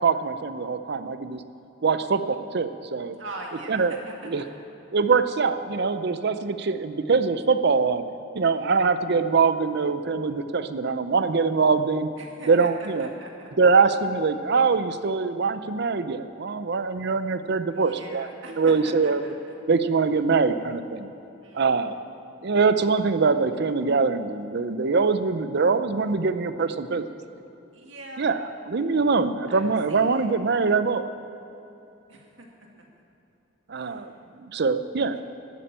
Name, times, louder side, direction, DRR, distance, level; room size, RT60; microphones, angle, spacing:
voice 1, 0.0-1.4 1.8-3.2 3.7-3.9 4.2-4.4 4.9-8.0 8.3-12.1 12.5-13.1 13.6-18.3 18.6-19.2 19.7-21.1 21.5-21.9 22.4-27.0 28.2-28.4 28.7-31.1 33.7-35.2, right 4 dB, 60° right, 11 dB, 0.6 m, -23 dB
voice 2, 3.2-4.5 8.5-8.9 12.2-13.5 17.7-19.6 21.4-22.0 27.7-28.3 29.5-29.6 29.9-30.3 32.1-32.5 33.7-34.1 35.1-35.2, right 2 dB, 75° right, 0 dB, 2.1 m, -42 dB
12.5 x 8.8 x 8.8 m, 2.9 s
head